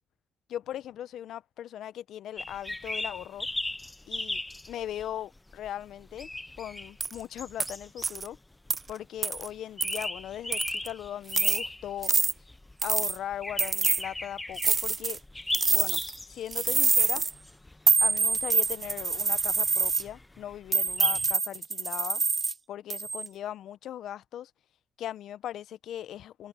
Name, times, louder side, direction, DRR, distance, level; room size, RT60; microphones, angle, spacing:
voice 1, 0.5-3.5 4.1-4.4 4.7-6.3 6.6-8.4 8.9-12.1 12.8-15.2 15.7-16.0 16.3-17.2 18.0-22.2 22.7-24.5 25.0-26.5, left 11 dB, 70° left, 1.0 m, -39 dB
sound 1, 2.4-21.3, left 2 dB, 15° left, 0.7 m, -39 dB
sound 2, 7.0-7.1 7.6-7.7 8.0-8.3 8.7-8.8 9.2-9.5 9.8-10.0 10.5-10.9 11.3-11.6 12.0-12.3 12.8-13.2 13.6-14.0 14.6-15.2 15.5-16.2 16.5-17.3 17.9-20.0 20.7-22.5 22.9-23.3, right 4 dB, 35° right, 0.3 m, -26 dB
open air
supercardioid pair, 60°, 0 cm